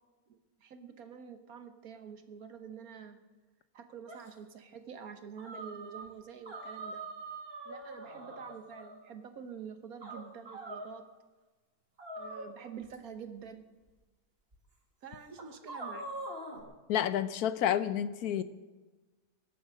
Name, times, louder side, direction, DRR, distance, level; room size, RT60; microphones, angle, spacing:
voice 1, 0.6-3.2 3.7-7.0 7.6-11.0 12.2-13.6 15.0-16.1 18.3-18.4, right 7 dB, 70° right, 8 dB, 1.6 m, -47 dB
sound 1, 4.1-4.3 5.4-6.1 6.4-9.0 10.0-10.9 12.0-12.9 13.9-14.0 14.5-14.6 15.4-16.6, right 2 dB, 40° right, 2.0 m, -43 dB
voice 2, 16.9-18.4, left 10 dB, 80° left, 13 dB, 1.2 m, -29 dB
23.5 x 8.0 x 6.4 m, 1.2 s
omnidirectional pair, 1.6 m